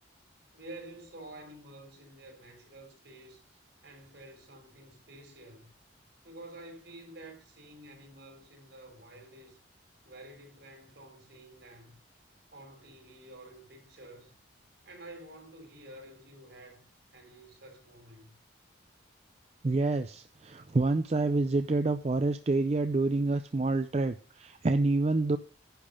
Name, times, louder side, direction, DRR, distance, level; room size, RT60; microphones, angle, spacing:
voice 1, 0.5-3.4 3.8-5.7 6.2-9.6 10.0-12.0 12.5-14.4 14.8-18.4, right 1 dB, 65° right, 3.7 m, -50 dB
voice 2, 19.6-25.4, right 2 dB, 35° right, 0.4 m, -27 dB
10.5 x 5.3 x 6.6 m
head